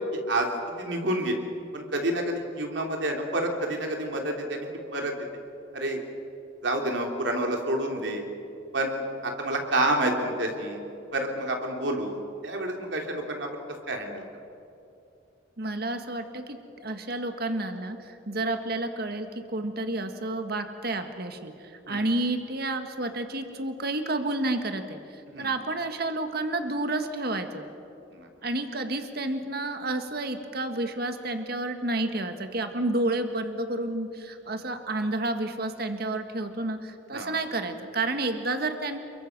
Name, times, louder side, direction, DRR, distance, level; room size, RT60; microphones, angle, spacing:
voice 1, 0.1-1.4 1.7-5.3 5.7-6.0 6.6-8.2 8.7-10.8 11.1-13.6 13.9-14.2 18.3-18.5 21.9-22.1 25.3-25.5 28.1-28.3 37.1-37.4, right 1 dB, 70° right, 2 dB, 3.5 m, -29 dB
voice 2, 15.6-27.7 28.4-39.0, right 2 dB, 55° right, 7 dB, 1.8 m, -30 dB
28.5 x 23.0 x 6.2 m, 2.7 s
head